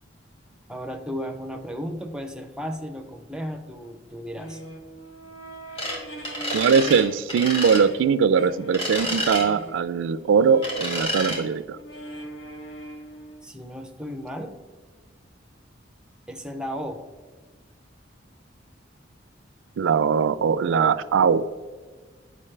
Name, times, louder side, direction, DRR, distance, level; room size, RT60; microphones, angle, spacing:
voice 1, 0.7-4.6 13.4-14.6 16.3-17.0, equal, 5° right, 0.5 m, -34 dB
sound 1, 4.4-7.1 7.4-13.5, right 1 dB, 80° left, 0.9 m, -42 dB
sound 2, 5.8-6.0 6.2-7.0 7.3-7.8 8.7-9.5 10.6-11.4, equal, 30° left, 1.7 m, -29 dB
voice 2, 6.5-11.8 19.8-21.5, right 6 dB, 80° right, 0.3 m, -21 dB
8.7 x 5.1 x 3.2 m
head